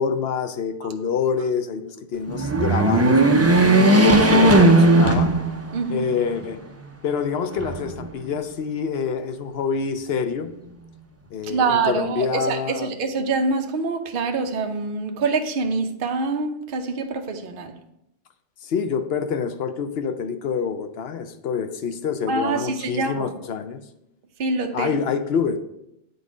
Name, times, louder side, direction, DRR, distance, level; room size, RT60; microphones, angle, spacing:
voice 1, 0.0-3.2 3.7-5.3 5.9-6.6 7.0-10.5 11.3-12.9 18.6-23.8 24.7-25.6, left 6 dB, 65° left, 9 dB, 0.8 m, -26 dB
sound 1, 2.3-5.9 6.4-6.5 7.5-8.3, right 2 dB, 25° right, 0.3 m, -16 dB
voice 2, 5.7-6.1 11.4-17.7 22.3-23.3 24.4-25.0, right 4 dB, 55° right, 5 dB, 0.8 m, -25 dB
8.2 x 3.9 x 4.9 m, 0.81 s
omnidirectional pair, 1.2 m